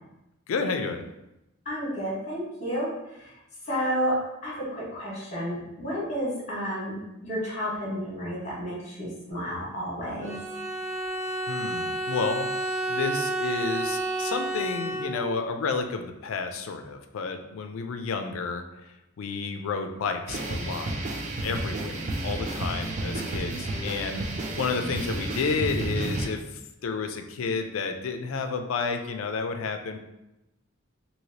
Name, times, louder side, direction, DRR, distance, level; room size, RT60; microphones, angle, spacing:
voice 1, 0.5-1.1 11.5-12.5 12.9-18.6 19.2-20.9 21.4-26.4 26.8-30.0, left 4 dB, 80° left, 6 dB, 0.4 m, -31 dB
voice 2, 1.6-2.9 3.7-4.2 4.4-6.9 7.2-10.3, equal, 35° left, -6 dB, 1.4 m, -31 dB
Bowed string instrument, 10.2-15.5, right 1 dB, 20° right, 1.3 m, -30 dB
sound 1, 20.3-26.3, right 2 dB, 35° right, 0.4 m, -31 dB
3.1 x 2.8 x 2.7 m, 0.91 s
head